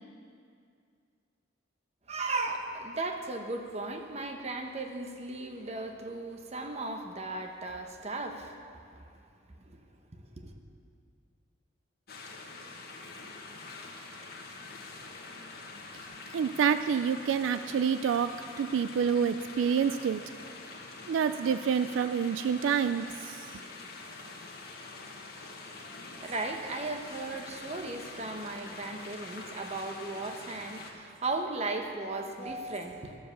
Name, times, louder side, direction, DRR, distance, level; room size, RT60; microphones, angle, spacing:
voice 1, 2.1-8.6 8.9-9.0 9.7-9.8 10.2-10.5 26.2-33.2, right 2 dB, 35° right, 4 dB, 0.9 m, -36 dB
sound 1, 12.1-30.9, left 3 dB, 50° left, 1.3 m, -45 dB
voice 2, 16.3-20.2 21.1-23.5, right 7 dB, 75° right, 11 dB, 0.3 m, -28 dB
13.0 x 7.1 x 7.1 m, 2.3 s
head